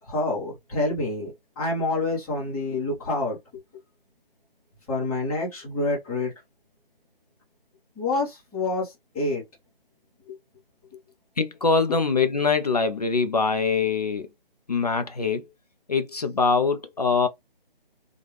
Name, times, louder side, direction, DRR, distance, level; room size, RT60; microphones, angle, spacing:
voice 1, 0.0-3.4 4.9-6.3 8.0-9.4 10.2-10.4, left 2 dB, 5° left, 0.9 m, -27 dB
voice 2, 11.4-14.3 14.7-15.5 15.9-17.3, left 4 dB, 45° left, 0.5 m, -23 dB
4.2 x 2.3 x 3.2 m
figure-of-eight pair, 150°, 29 cm